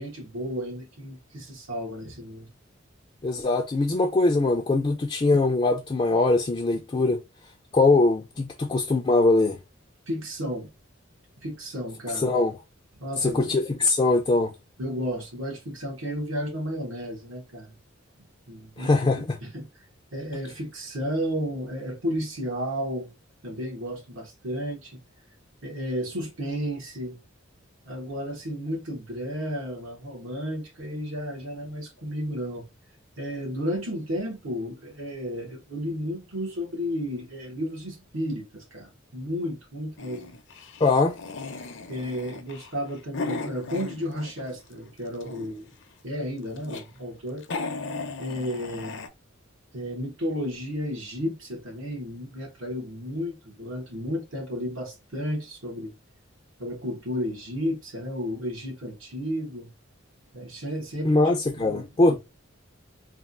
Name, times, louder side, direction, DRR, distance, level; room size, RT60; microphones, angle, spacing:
voice 1, 0.0-2.6 10.1-10.7 11.4-12.3 13.0-13.5 14.8-17.8 18.5-18.9 19.4-19.7 20.1-23.1 23.4-25.0 25.6-27.2 27.8-32.7 33.2-40.4 41.9-45.7 46.0-47.4 48.2-49.0 49.7-55.9 56.6-59.7 60.3-61.2 61.6-62.2, equal, 80° right, 1.4 m, -33 dB
voice 2, 3.2-7.2 7.7-9.6 12.1-12.6 13.2-14.5 18.8-19.4 40.8-41.2 61.0-62.2, left 2 dB, 25° left, 0.4 m, -22 dB
sound 1, 40.0-44.6 44.9-45.7 46.3-46.8 47.2-47.3 47.4-49.1, left 3 dB, 65° left, 0.6 m, -36 dB
3.4 x 2.3 x 2.4 m
head